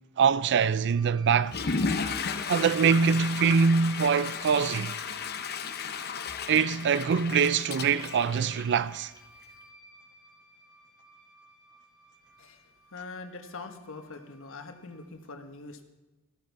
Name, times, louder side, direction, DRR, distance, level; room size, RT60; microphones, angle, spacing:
voice 1, 0.2-1.6 2.5-4.9 6.5-9.1, right 6 dB, 55° right, 0.4 m, -24 dB
sound 1, 0.9-15.1, right 3 dB, 15° right, 2.1 m, -55 dB
Water / Toilet flush, 1.4-9.2, left 5 dB, 50° left, 0.8 m, -34 dB
voice 2, 12.9-15.8, left 3 dB, 65° left, 1.3 m, -43 dB
14.0 x 12.5 x 4.6 m
head